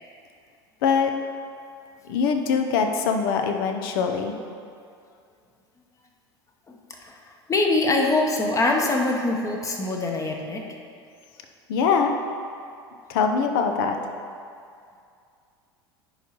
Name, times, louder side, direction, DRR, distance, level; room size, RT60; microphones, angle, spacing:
voice 1, 0.8-1.1 2.1-4.3 11.7-12.1 13.1-14.0, left 6 dB, 65° left, 5 dB, 0.7 m, -23 dB
voice 2, 6.9-10.6, left 2 dB, 25° left, 1 dB, 1.0 m, -24 dB
10.5 x 4.7 x 3.0 m, 2.4 s
hypercardioid pair, 75°, 13 cm